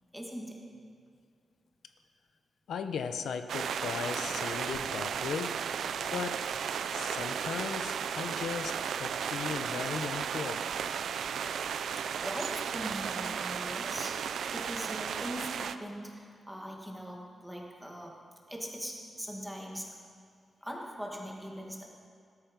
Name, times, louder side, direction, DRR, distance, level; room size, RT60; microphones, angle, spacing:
voice 1, 0.1-0.9 11.9-14.2 14.5-18.2 18.5-19.9 20.6-21.9, equal, ahead, -1 dB, 1.9 m, -41 dB
voice 2, 2.7-5.6 6.0-6.5 6.9-10.7, left 6 dB, 90° left, 8 dB, 0.9 m, -37 dB
sound 1, 3.5-15.7, right 7 dB, 75° right, 0.5 m, -34 dB
19.5 x 13.0 x 5.3 m, 2.2 s
wide cardioid pair, 175°, 0 cm